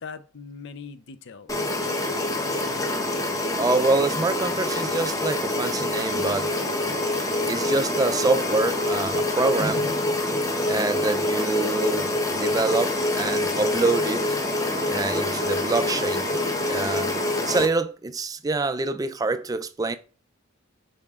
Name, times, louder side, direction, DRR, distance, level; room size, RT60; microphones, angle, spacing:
voice 1, 0.0-2.8, left 5 dB, 60° left, 0.5 m, -42 dB
sound 1, 1.5-17.7, left 2 dB, 15° left, 0.8 m, -26 dB
voice 2, 3.6-6.5 7.5-9.9 10.7-12.1 12.3-14.3 14.9-16.3 16.7-17.2 17.4-20.0, right 3 dB, 20° right, 0.4 m, -26 dB
6.5 x 4.2 x 3.6 m
head